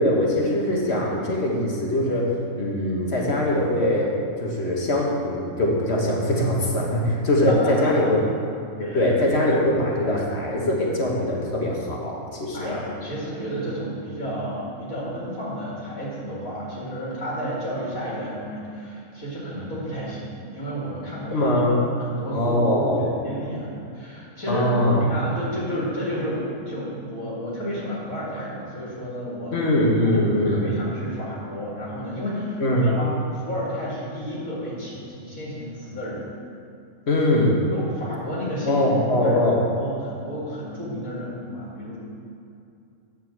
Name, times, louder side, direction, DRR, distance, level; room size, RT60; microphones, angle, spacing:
voice 1, 0.0-4.1 4.4-8.2 8.8-12.8 21.3-21.8 22.3-23.1 24.5-25.0 29.5-30.6 32.6-33.0 37.1-37.6 38.7-39.6, left 1 dB, 50° left, -3 dB, 1.9 m, -22 dB
voice 2, 7.5-7.9 8.8-9.1 12.5-29.5 30.0-36.3 37.7-42.0, equal, 70° left, -7 dB, 2.7 m, -31 dB
11.5 x 4.6 x 7.7 m, 2.5 s
omnidirectional pair, 1.5 m